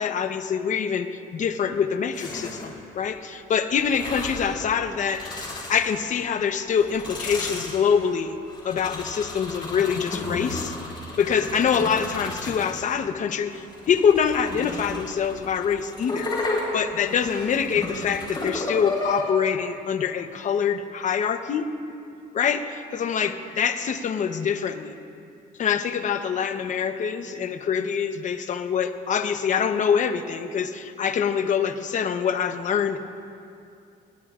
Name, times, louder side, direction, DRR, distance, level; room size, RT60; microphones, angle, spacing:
voice 1, 0.0-8.3 8.6-10.7 11.2-16.3 16.7-21.7 22.3-24.9 25.6-33.0, left 7 dB, 45° left, 9 dB, 0.9 m, -25 dB
sound 1, 2.1-2.8 3.8-4.5 5.0-6.2 6.7-13.0 13.5-19.2, left 2 dB, 25° left, 4.2 m, -33 dB
21.0 x 18.5 x 2.5 m, 2.5 s
cardioid pair, 110°, 17 cm